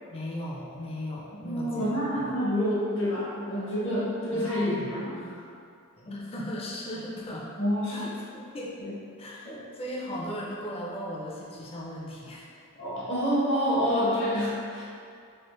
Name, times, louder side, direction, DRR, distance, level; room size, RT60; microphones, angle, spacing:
voice 1, 0.1-2.4 4.3-4.9 6.0-7.5 7.9-8.1 8.3-8.7 9.2-12.5, equal, 25° left, -4 dB, 0.4 m, -37 dB
voice 2, 1.4-5.3 7.6-8.1 8.8-8.9 9.4-9.6 12.8-14.8, equal, 55° left, -8 dB, 0.8 m, -28 dB
3.2 x 2.4 x 3.0 m, 2.4 s
head